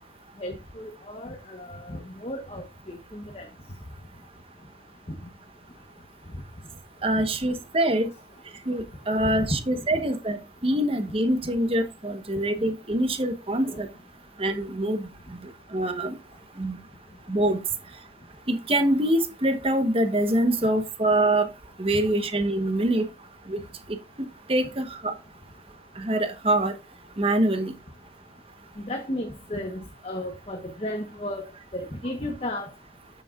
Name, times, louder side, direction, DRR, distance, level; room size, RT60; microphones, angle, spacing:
voice 1, 0.4-3.5 7.1-7.2 9.2-9.6 9.9-10.0 13.6-13.8 28.8-31.5 31.7-32.7, left 1 dB, 35° left, 1.0 m, -34 dB
voice 2, 7.0-8.1 8.7-13.9 14.4-16.1 16.6-16.8 17.3-17.6 18.5-21.5 21.8-23.0 23.5-23.6 24.2-25.1 26.0-26.7 27.2-27.7, right 1 dB, 30° right, 1.1 m, -25 dB
9.4 x 7.3 x 2.4 m
head